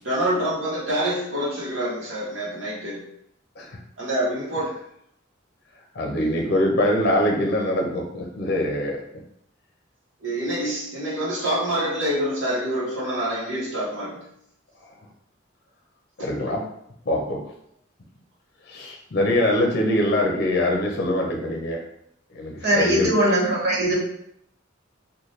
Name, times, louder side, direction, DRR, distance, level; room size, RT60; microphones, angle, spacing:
voice 1, 0.0-3.1 4.0-4.7 10.2-14.3, right 1 dB, 80° right, -8 dB, 0.9 m, -26 dB
voice 2, 5.9-9.0 16.2-16.6 17.1-17.4 18.7-21.8 22.3-23.1, left 1 dB, 55° left, 1 dB, 0.6 m, -23 dB
voice 3, 22.6-24.0, right 1 dB, 60° right, -5 dB, 1.2 m, -20 dB
4.0 x 2.2 x 3.1 m, 0.73 s
head